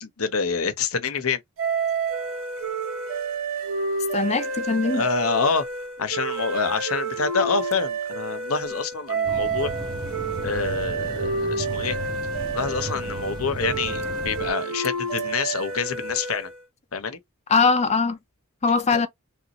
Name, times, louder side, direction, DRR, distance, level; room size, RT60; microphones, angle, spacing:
voice 1, 0.0-1.4 4.9-5.6 6.0-9.7 10.4-12.0 12.5-16.5 16.9-17.2 18.9-19.0, left 5 dB, 90° left, 0.9 m, -26 dB
sound 1, 1.6-16.6, right 3 dB, 80° right, 2.0 m, -29 dB
voice 2, 4.1-5.0 17.5-18.2 18.6-19.1, left 4 dB, 30° left, 0.6 m, -21 dB
sound 2, 9.2-14.5, right 3 dB, 20° right, 0.8 m, -35 dB
3.5 x 2.6 x 3.0 m
head